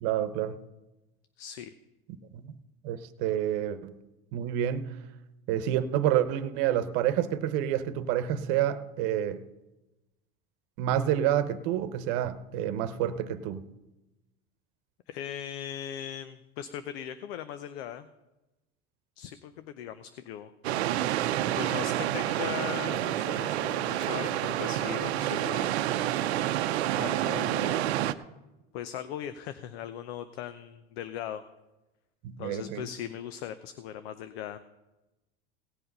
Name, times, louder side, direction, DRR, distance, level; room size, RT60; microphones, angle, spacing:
voice 1, 0.0-0.6 2.3-2.4 2.8-3.9 4.3-5.0 5.5-9.4 10.8-13.7 32.2-32.9, right 11 dB, 65° right, 12 dB, 1.0 m, -28 dB
voice 2, 1.4-1.7 15.1-18.1 19.2-21.1 21.5-25.8 26.9-28.1 28.7-31.4 32.4-34.6, left 10 dB, 75° left, 11 dB, 0.8 m, -39 dB
sound 1, 20.6-28.1, right 13 dB, 85° right, 0.7 m, -28 dB
17.5 x 7.7 x 5.5 m, 1.0 s
hypercardioid pair, 95°, 32 cm